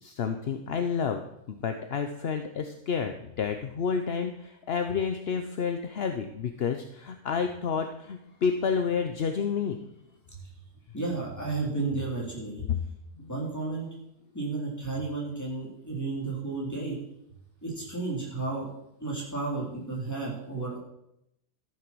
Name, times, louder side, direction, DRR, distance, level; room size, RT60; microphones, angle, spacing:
voice 1, 0.0-1.2 1.5-9.8 12.7-12.8 13.2-13.4, left 6 dB, 50° left, 7 dB, 0.8 m, -30 dB
voice 2, 10.9-12.6 13.3-13.9 14.3-17.0 17.6-18.7 19.0-20.8, right 3 dB, 10° left, -4 dB, 3.9 m, -32 dB
13.5 x 7.7 x 6.2 m, 0.81 s
omnidirectional pair, 1.7 m